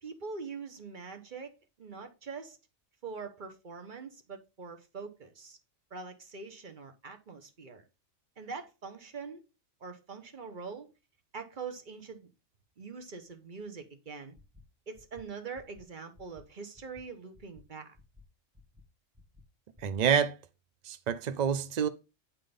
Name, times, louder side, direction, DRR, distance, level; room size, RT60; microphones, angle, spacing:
voice 1, 0.0-1.5 1.8-2.6 3.0-5.6 5.9-7.8 8.4-9.4 9.8-10.9 11.3-12.3 12.8-14.4 14.9-18.0, right 5 dB, 40° right, 1.2 m, -43 dB
sound 1, 14.3-14.6 14.9-15.2 15.5-15.8 16.1-16.4 16.7-17.0 17.3-17.6 17.9-18.2 18.5-18.8 19.1-19.4 19.7-20.0, left 2 dB, 10° right, 1.0 m, -56 dB
voice 2, 19.8-20.4 20.8-21.9, right 7 dB, 75° right, 0.3 m, -27 dB
8.8 x 3.8 x 5.1 m
omnidirectional pair, 1.4 m